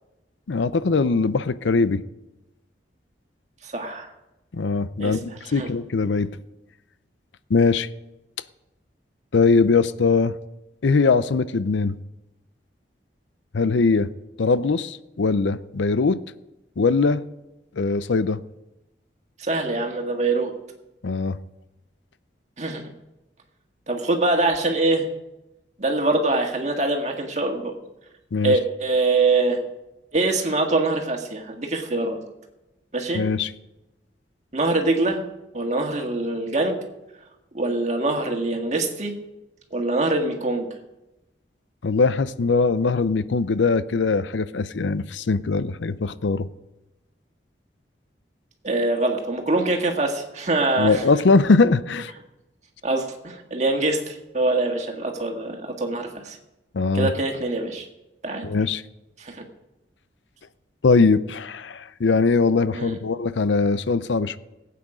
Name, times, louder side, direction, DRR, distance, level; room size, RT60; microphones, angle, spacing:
voice 1, 0.5-2.0 4.5-6.3 7.5-7.9 9.3-10.3 10.8-12.0 13.5-14.1 14.4-16.2 16.8-17.2 17.8-18.4 21.0-21.4 28.3-28.5 33.1-33.5 41.8-46.5 50.8-52.1 56.7-57.1 58.4-58.8 60.8-64.4, left 4 dB, 85° left, 15 dB, 0.6 m, -21 dB
voice 2, 3.6-4.1 5.0-5.2 5.4-5.7 19.4-20.5 22.6-22.8 23.9-25.1 25.8-27.7 28.4-29.6 30.1-32.2 32.9-33.2 34.5-35.2 35.5-36.8 37.5-39.1 39.7-40.7 48.6-51.0 52.8-56.4 56.9-57.9 58.2-58.5 59.2-59.4 62.8-63.0, right 2 dB, 40° right, 3 dB, 1.8 m, -24 dB
19.0 x 8.6 x 5.0 m, 0.97 s
head